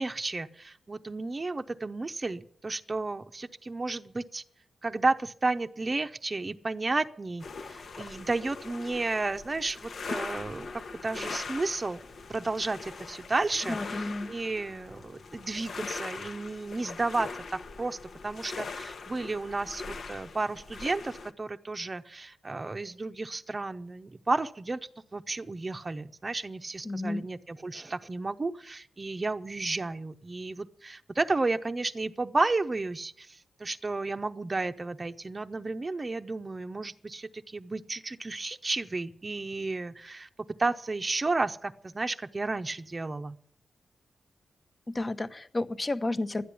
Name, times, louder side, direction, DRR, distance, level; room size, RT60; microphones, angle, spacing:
voice 1, 0.0-4.4 4.8-12.0 12.3-18.0 18.2-40.3 40.6-43.4, right 3 dB, 30° right, 8 dB, 0.7 m, -32 dB
sound 1, 7.4-21.3, left 4 dB, 65° left, 1.1 m, -41 dB
voice 2, 13.7-14.3 26.8-27.3 44.9-46.5, left 2 dB, 30° left, 11 dB, 1.0 m, -31 dB
12.5 x 10.0 x 8.5 m, 0.64 s
cardioid pair, 85°, 0 cm